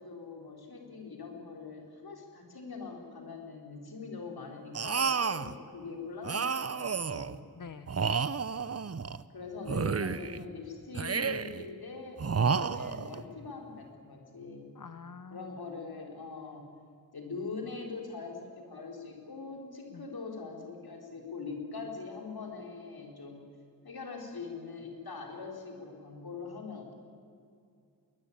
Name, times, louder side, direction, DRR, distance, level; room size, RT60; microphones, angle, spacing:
voice 1, 0.0-7.5 9.3-14.7 15.3-16.7 17.1-23.4 23.8-26.9, left 4 dB, 70° left, 2 dB, 4.4 m, -42 dB
sound 1, 4.7-5.5 6.2-7.4 7.9-9.2 9.7-10.4 10.9-11.6 12.2-13.2, right 5 dB, 40° right, 0.8 m, -31 dB
voice 2, 7.5-7.9 14.8-15.5 19.9-20.1, left 6 dB, 55° left, 11 dB, 0.8 m, -46 dB
22.5 x 19.5 x 8.8 m, 2.3 s
wide cardioid pair, 75°, 38 cm